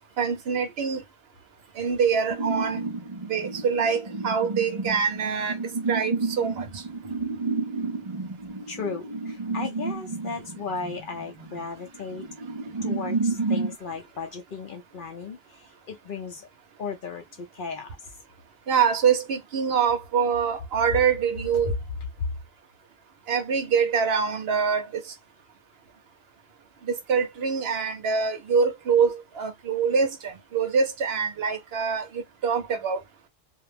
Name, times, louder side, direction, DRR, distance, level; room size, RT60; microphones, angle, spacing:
voice 1, 0.2-1.0 1.8-2.8 3.3-5.6 5.9-6.8 18.7-21.7 23.3-25.1 26.9-33.0, right 6 dB, 65° right, 0.8 m, -25 dB
sound 1, 2.3-13.7, right 3 dB, 35° right, 0.5 m, -31 dB
voice 2, 8.7-12.3 12.8-16.5 16.8-18.0, left 5 dB, 55° left, 0.7 m, -36 dB
2.4 x 2.0 x 3.2 m
omnidirectional pair, 1.2 m